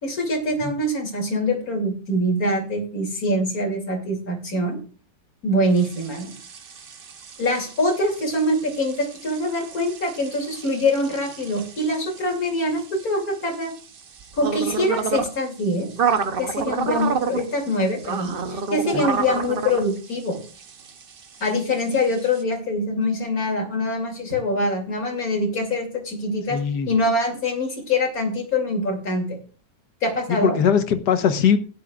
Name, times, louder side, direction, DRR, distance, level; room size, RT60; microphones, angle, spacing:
voice 1, 0.0-4.8 5.4-6.4 7.4-13.7 14.3-15.9 16.4-20.4 21.4-26.6 26.9-29.4 30.0-30.6, left 1 dB, 50° left, 2 dB, 3.2 m, -24 dB
sound 1, 5.8-22.4, right 6 dB, 50° right, 0.7 m, -31 dB
voice 2, 26.5-26.9 30.3-31.6, left 7 dB, 65° left, 9 dB, 1.6 m, -20 dB
16.5 x 10.5 x 2.4 m, 0.37 s
omnidirectional pair, 1.9 m